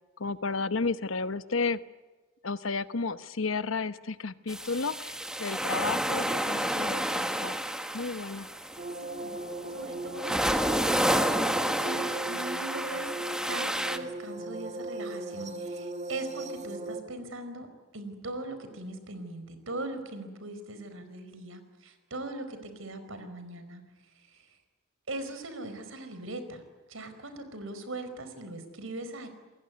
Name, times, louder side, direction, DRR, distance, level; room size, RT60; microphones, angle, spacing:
voice 1, 0.2-1.8 2.4-5.1 5.4-7.5 7.9-8.5, left 4 dB, 80° left, 13 dB, 1.0 m, -32 dB
sound 1, 4.5-14.0, equal, 5° right, 1.5 m, -30 dB
sound 2, 8.8-17.0, right 2 dB, 35° right, 2.4 m, -38 dB
voice 2, 9.0-9.4 9.7-13.1 13.4-17.7 17.9-23.8 24.1-24.5 25.1-26.6 26.9-29.3, right 2 dB, 85° right, 9 dB, 4.8 m, -40 dB
28.5 x 21.5 x 9.6 m, 1.2 s
head